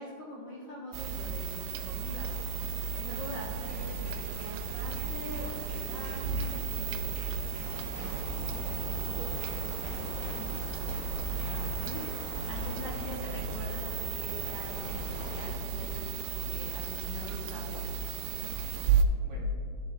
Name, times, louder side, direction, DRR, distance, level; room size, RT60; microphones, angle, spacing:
voice 1, 0.0-2.3 2.9-7.0 10.2-10.6 11.8-12.0 12.4-17.8, left 1 dB, 75° left, -7 dB, 1.4 m, -43 dB
sound 1, 0.9-19.0, right 6 dB, 85° right, 2.6 m, -34 dB
sound 2, 3.6-8.9 9.4-11.9 12.5-12.8, left 1 dB, 55° left, 1.4 m, -50 dB
sound 3, 7.6-15.5, left 4 dB, 90° left, 2.3 m, -43 dB
voice 2, 8.1-10.3 11.4-12.2 18.7-18.8 19.2-19.5, equal, 45° right, -7 dB, 2.2 m, -47 dB
13.0 x 10.5 x 2.3 m, 2.5 s
omnidirectional pair, 5.7 m